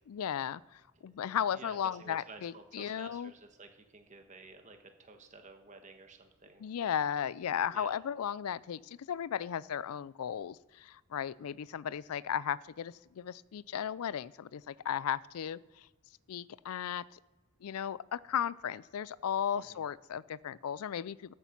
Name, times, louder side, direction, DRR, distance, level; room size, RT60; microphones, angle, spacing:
voice 1, 0.1-3.3 6.6-15.9 16.3-17.2 17.6-21.3, left 8 dB, 90° left, 21 dB, 0.4 m, -35 dB
voice 2, 1.5-6.6 7.7-8.0 19.5-19.8, right 3 dB, 35° right, 5 dB, 1.4 m, -52 dB
14.0 x 6.7 x 5.9 m, 1.2 s
head